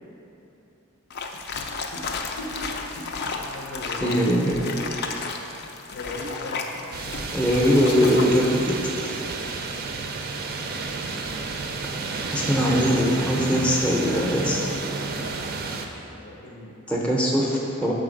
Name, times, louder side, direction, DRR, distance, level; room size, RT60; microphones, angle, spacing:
sound 1, 1.1-8.6, left 4 dB, 50° left, 0.4 m, -33 dB
voice 1, 1.9-2.7 2.9-4.1 5.1-5.2 5.9-6.8 9.2-10.1 12.0-12.1 16.1-16.8, left 2 dB, 75° left, -3 dB, 0.8 m, -39 dB
voice 2, 4.0-4.6 7.3-9.2 12.3-14.6 16.9-17.9, equal, 5° left, -3 dB, 0.6 m, -21 dB
sound 2, 6.9-15.9, right 3 dB, 45° right, 0.4 m, -31 dB
6.4 x 4.0 x 5.1 m, 3.0 s
head